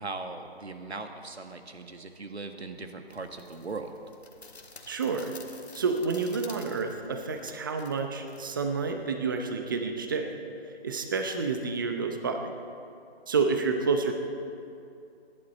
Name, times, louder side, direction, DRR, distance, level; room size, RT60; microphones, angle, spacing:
voice 1, 0.0-3.9, right 3 dB, 85° right, 6 dB, 1.7 m, -39 dB
sound 1, 3.1-9.1, left 3 dB, 85° left, 1.7 m, -51 dB
voice 2, 4.9-5.3 5.7-10.4 10.8-12.5 13.3-14.1, right 4 dB, 20° right, 5 dB, 0.7 m, -29 dB
23.0 x 11.0 x 4.2 m, 2.6 s
figure-of-eight pair, 155°, 32 cm